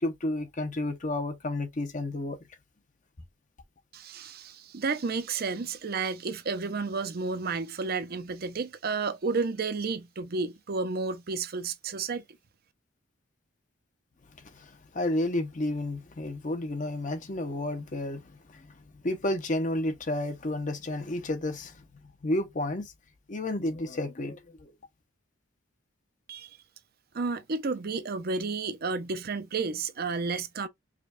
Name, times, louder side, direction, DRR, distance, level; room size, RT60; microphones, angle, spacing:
voice 1, 0.0-2.4 14.6-18.7 19.0-21.8 22.2-22.9 23.3-24.7, left 1 dB, 40° left, 0.7 m, -31 dB
voice 2, 3.9-12.2 26.3-26.6 27.1-30.7, right 4 dB, 50° right, 0.5 m, -31 dB
5.0 x 2.3 x 2.5 m
head